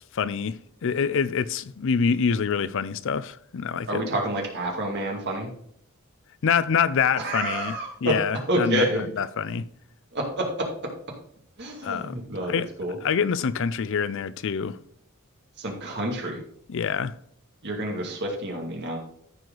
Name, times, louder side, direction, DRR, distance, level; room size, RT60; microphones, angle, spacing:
voice 1, 0.1-4.1 6.4-9.7 11.8-12.2 12.5-12.7 13.0-14.8 16.7-17.2, left 6 dB, 65° left, 0.5 m, -26 dB
voice 2, 3.9-5.5 7.2-8.1 8.5-9.1 10.1-10.7 11.6-13.0 15.6-16.4 17.6-19.0, right 1 dB, 55° right, 2.3 m, -28 dB
14.0 x 4.7 x 3.9 m
head